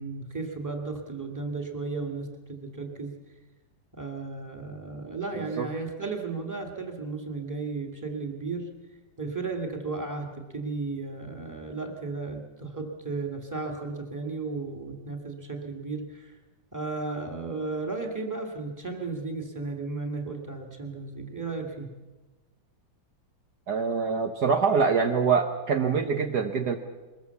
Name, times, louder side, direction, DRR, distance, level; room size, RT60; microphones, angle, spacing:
voice 1, 0.0-3.2 3.9-8.7 9.2-16.4 16.7-21.9, right 3 dB, 10° right, 3 dB, 2.1 m, -34 dB
voice 2, 5.3-5.7 23.7-26.8, right 5 dB, 60° right, 4 dB, 1.5 m, -25 dB
22.5 x 20.5 x 7.1 m, 1.2 s
omnidirectional pair, 2.1 m